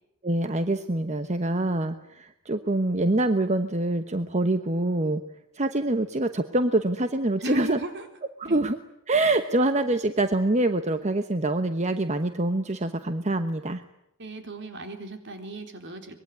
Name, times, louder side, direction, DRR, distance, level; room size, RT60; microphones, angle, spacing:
voice 1, 0.2-5.2 5.5-7.8 8.4-8.8 9.1-13.8, right 2 dB, 35° right, 9 dB, 1.1 m, -25 dB
voice 2, 7.4-8.1 8.4-8.6 14.2-16.2, right 2 dB, 55° right, 6 dB, 4.1 m, -36 dB
24.5 x 22.0 x 9.5 m, 0.84 s
head